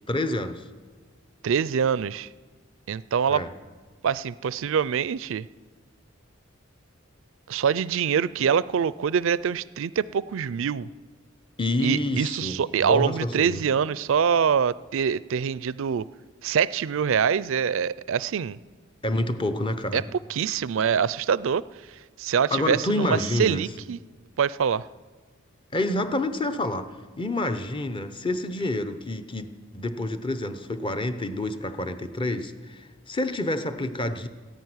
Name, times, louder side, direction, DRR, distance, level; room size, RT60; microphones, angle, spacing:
voice 1, 0.1-0.6 3.3-3.5 11.6-13.6 19.0-20.0 22.5-23.7 25.7-29.5 29.7-34.3, left 1 dB, 25° left, 9 dB, 0.8 m, -28 dB
voice 2, 1.4-2.3 2.9-3.4 4.0-5.4 7.5-10.9 11.8-16.0 16.4-18.6 19.9-20.0 20.3-21.6 22.2-24.0 24.4-24.8, right 7 dB, 70° right, 19 dB, 0.4 m, -24 dB
14.0 x 10.5 x 9.5 m, 1.4 s
head